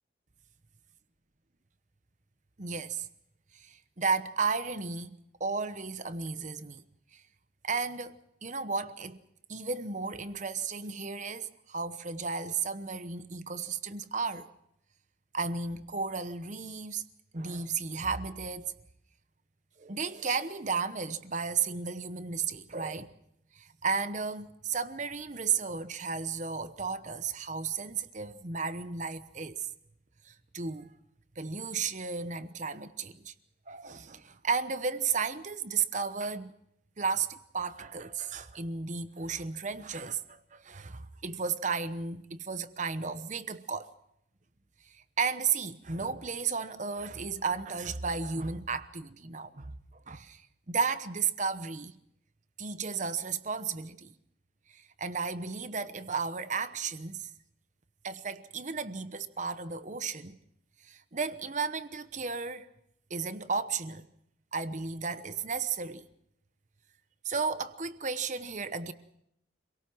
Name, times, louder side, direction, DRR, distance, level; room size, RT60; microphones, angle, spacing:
voice 1, 2.6-3.1 3.5-6.8 7.1-7.2 7.6-9.2 9.5-14.5 15.3-17.0 17.3-18.7 19.8-23.1 23.5-29.7 30.2-30.9 31.4-33.3 33.7-36.5 37.0-43.9 44.9-49.7 50.1-52.0 52.6-54.1 54.7-57.3 58.0-60.4 60.8-62.7 63.1-64.1 64.5-66.0 67.2-68.9, right 5 dB, 40° right, 1.0 m, -34 dB
26.5 x 18.0 x 6.2 m
head